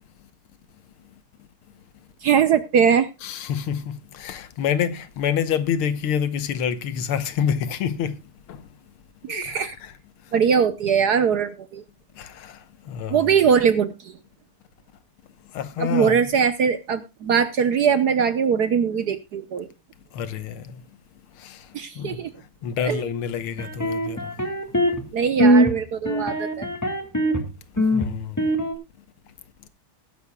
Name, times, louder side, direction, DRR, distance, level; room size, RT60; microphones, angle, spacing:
voice 1, 2.2-3.1 9.2-9.7 10.3-11.8 13.1-14.2 15.8-19.7 21.7-22.3 22.8-23.0 25.1-26.7, right 7 dB, 60° right, 1.1 m, -21 dB
voice 2, 3.2-8.2 8.5-8.6 9.3-9.9 12.2-12.6 12.9-13.2 15.5-16.2 20.1-20.8 21.4-21.6 22.0-22.2 22.6-24.3 27.9-28.4, left 8 dB, 75° left, 1.9 m, -27 dB
sound 1, 23.6-25.1 25.4-25.7 26.0-27.4 27.8-28.7, right 1 dB, 10° left, 1.7 m, -21 dB
20.0 x 10.5 x 2.2 m
omnidirectional pair, 2.4 m